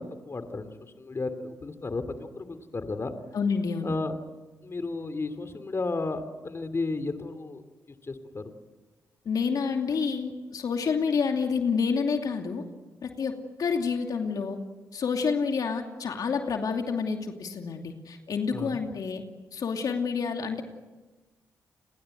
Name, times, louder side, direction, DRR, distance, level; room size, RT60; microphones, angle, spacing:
voice 1, 0.0-2.0 2.3-3.1 3.8-4.2 4.6-7.6 8.1-8.5 18.5-18.8, left 3 dB, 40° left, 10 dB, 2.7 m, -33 dB
voice 2, 3.3-4.0 9.2-12.6 13.0-14.6 14.9-19.2 19.5-20.6, left 5 dB, 65° left, 4 dB, 2.6 m, -28 dB
30.0 x 21.0 x 7.9 m, 1.2 s
supercardioid pair, 50°, 7 cm